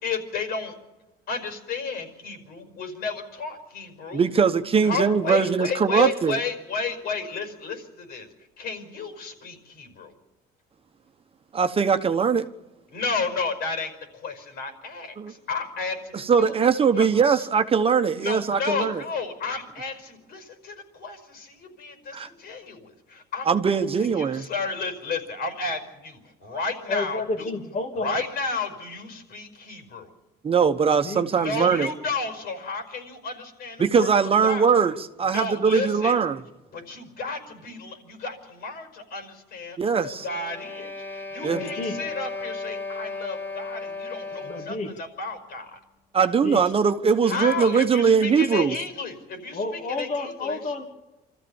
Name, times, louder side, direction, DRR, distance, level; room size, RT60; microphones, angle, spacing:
voice 1, 0.0-0.8 1.3-4.2 4.8-8.3 8.6-10.1 12.9-16.6 17.0-17.1 18.1-27.5 27.9-30.1 31.4-34.1 34.4-34.6 35.3-36.2 36.7-45.8 47.2-50.6, left 4 dB, 70° left, 5.4 m, -32 dB
voice 2, 4.1-6.4 11.5-12.5 15.2-15.3 16.1-19.0 22.1-22.3 23.5-24.4 30.4-31.9 33.8-36.4 39.8-40.2 41.4-41.6 46.1-48.7, right 6 dB, 35° right, 1.1 m, -21 dB
voice 3, 26.9-28.2 31.0-31.2 41.5-42.0 44.3-44.9 46.4-46.6 49.5-50.8, left 3 dB, 45° left, 2.6 m, -30 dB
sound 1, 40.2-44.9, left 3 dB, 10° left, 2.8 m, -35 dB
25.5 x 14.0 x 7.2 m
cardioid pair, 110°, 17 cm